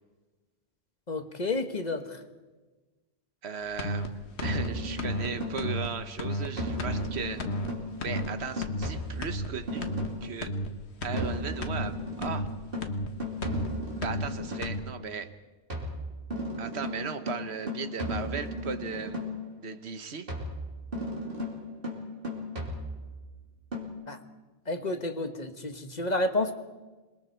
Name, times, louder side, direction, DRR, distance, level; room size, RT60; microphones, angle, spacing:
voice 1, 1.1-2.2 24.1-24.2 24.7-26.5, left 2 dB, 40° left, 7 dB, 1.5 m, -30 dB
voice 2, 3.4-7.4 8.0-9.9 10.2-10.5 11.0-12.5 14.0-15.3 16.6-19.2 19.6-20.3, right 6 dB, 70° right, 10 dB, 1.4 m, -37 dB
sound 1, 3.8-4.1 4.4-4.7 5.0-5.3 5.6-5.9 6.2-6.5 6.8-7.1 7.4-7.7 8.0-8.3 8.6-8.9 9.2-9.5 9.8-10.1 10.4-10.7 11.0-11.3 11.6-11.9 12.2-12.5 12.8-13.1 13.4-13.7 14.0-14.3 14.6-14.8, left 1 dB, 75° left, 1.6 m, -32 dB
sound 2, 4.4-5.8 6.6-10.4 11.1-14.8 15.7-19.5 20.3-23.2 23.7-23.9, left 1 dB, 55° right, 3.3 m, -35 dB
27.0 x 21.5 x 4.5 m, 1.2 s
omnidirectional pair, 1.1 m